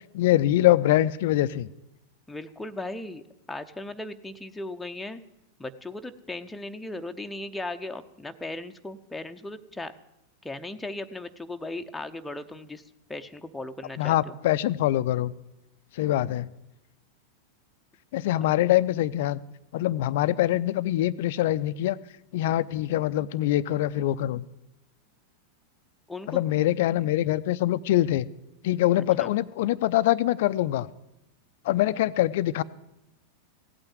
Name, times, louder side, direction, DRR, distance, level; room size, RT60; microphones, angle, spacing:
voice 1, 0.1-1.7 14.0-15.3 15.9-16.5 18.1-19.4 19.7-22.0 22.3-24.5 26.3-28.3 28.6-30.9 31.6-32.6, left 14 dB, 55° left, 16 dB, 0.5 m, -24 dB
voice 2, 2.3-5.2 5.6-9.9 10.4-12.8 13.1-14.4 18.3-18.4 26.1-26.4 28.9-29.3, left 2 dB, 5° left, 6 dB, 0.8 m, -37 dB
16.5 x 8.8 x 9.2 m, 0.88 s
figure-of-eight pair, 90°, 0 cm